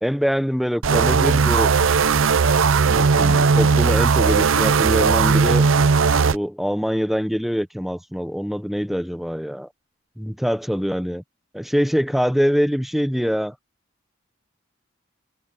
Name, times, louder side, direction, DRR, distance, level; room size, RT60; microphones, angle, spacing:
voice 1, 0.0-1.7 2.9-5.7 6.3-9.7 10.2-11.2 11.5-13.5, equal, ahead, 1.0 m, -24 dB
sound 1, 0.8-6.3, right 5 dB, 90° right, 0.6 m, -17 dB
head